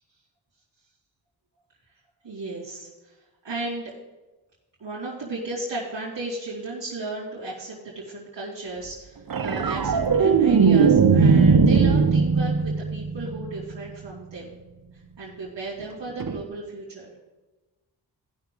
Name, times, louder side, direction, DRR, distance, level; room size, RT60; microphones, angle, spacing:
voice 1, 2.2-3.1 3.4-3.9 4.8-14.5 15.2-17.1, right 2 dB, 70° right, -8 dB, 2.9 m, -35 dB
sound 1, 9.3-13.8 16.2-16.4, right 5 dB, 50° right, 0.8 m, -19 dB
15.0 x 5.9 x 3.9 m, 1.1 s
cardioid pair, 40°, 44 cm